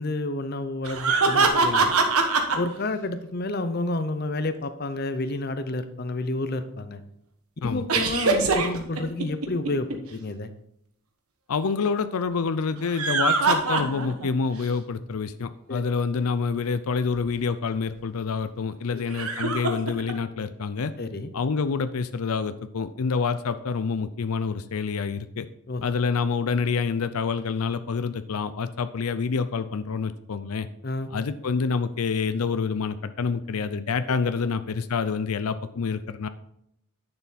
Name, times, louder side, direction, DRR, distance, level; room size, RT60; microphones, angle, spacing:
voice 1, 0.0-1.9 2.6-7.0 7.6-10.5 15.7-15.8 18.9-19.0 21.0-21.3 25.7-25.9 30.8-31.1, left 2 dB, 45° left, 10 dB, 0.6 m, -30 dB
sound 1, 0.8-2.6 7.9-9.9 12.8-14.3 14.7-14.8 17.2-17.3 19.1-20.1, right 4 dB, 85° right, 1.3 m, -23 dB
voice 2, 11.5-20.9 21.3-25.5 25.8-30.7 31.1-36.3, left 5 dB, 85° left, 12 dB, 0.5 m, -27 dB
10.5 x 6.9 x 4.2 m, 0.75 s
head